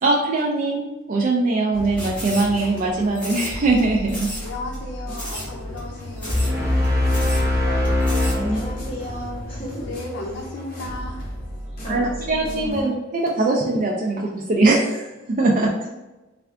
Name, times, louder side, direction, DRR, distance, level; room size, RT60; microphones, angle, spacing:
voice 1, 0.0-4.3 11.9-15.7, right 2 dB, 40° right, -1 dB, 0.4 m, -21 dB
sound 1, 1.7-12.8, equal, 45° left, 1.1 m, -35 dB
sound 2, 2.0-2.8 3.1-3.8 4.1-4.5 4.7-4.8 5.1-5.5 5.8-5.9 6.2-6.6 6.8-6.9 7.1-7.4 7.8-8.4, equal, 5° left, 1.4 m, -34 dB
voice 2, 4.4-6.5 9.8-11.3, left 2 dB, 75° left, -2 dB, 0.6 m, -34 dB
sound 3, 6.3-9.6, left 1 dB, 15° right, 0.9 m, -22 dB
voice 3, 8.3-9.9 11.7-13.0 15.6-15.9, equal, 30° left, -8 dB, 1.4 m, -32 dB
3.3 x 2.4 x 3.5 m, 1.1 s
head